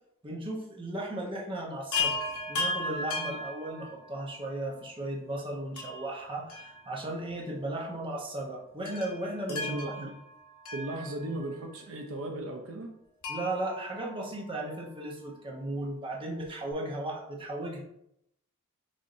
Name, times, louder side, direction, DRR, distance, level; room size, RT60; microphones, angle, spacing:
voice 1, 0.2-2.2 2.5-9.7 13.3-17.8, right 1 dB, 25° right, -2 dB, 0.9 m, -36 dB
Chime, 1.9-4.3 5.8-7.3 7.6-7.7 8.9-11.6 13.2-14.8 16.4-16.5 16.7-16.8, left 2 dB, 80° left, 1.1 m, -36 dB
voice 2, 9.5-10.1 10.7-12.9, right 1 dB, 65° right, 2 dB, 0.6 m, -36 dB
6.4 x 2.7 x 2.6 m, 0.78 s
head